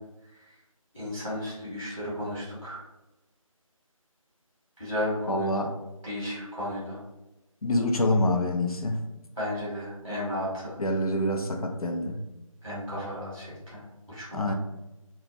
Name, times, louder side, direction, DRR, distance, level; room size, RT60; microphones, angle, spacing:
voice 1, 0.9-2.8 4.8-5.5 6.0-7.0 9.4-10.8 12.6-14.5, left 1 dB, 5° left, -25 dB, 0.6 m, -34 dB
voice 2, 5.3-5.7 7.6-9.0 10.8-12.2 14.3-14.5, left 1 dB, 85° left, 4 dB, 0.5 m, -26 dB
2.2 x 2.1 x 2.8 m, 0.99 s
figure-of-eight pair, 160°, 18 cm